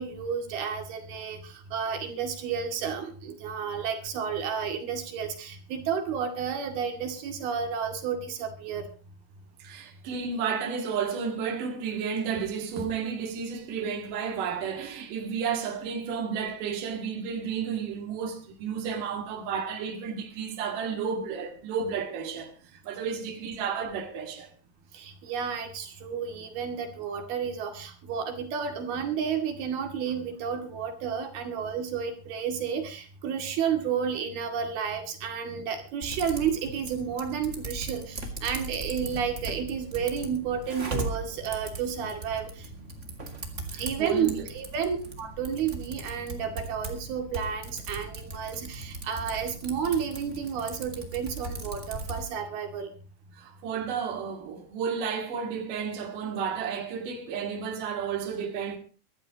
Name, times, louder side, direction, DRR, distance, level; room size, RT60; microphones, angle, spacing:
voice 1, 0.0-8.9 24.9-42.7 43.7-52.9, right 7 dB, 80° right, 4.2 m, -31 dB
voice 2, 9.6-24.5 43.7-44.4 53.3-58.8, right 6 dB, 65° right, 3.4 m, -32 dB
Typing, 36.0-52.2, right 2 dB, 25° right, 1.9 m, -39 dB
24.0 x 13.0 x 2.9 m
omnidirectional pair, 4.3 m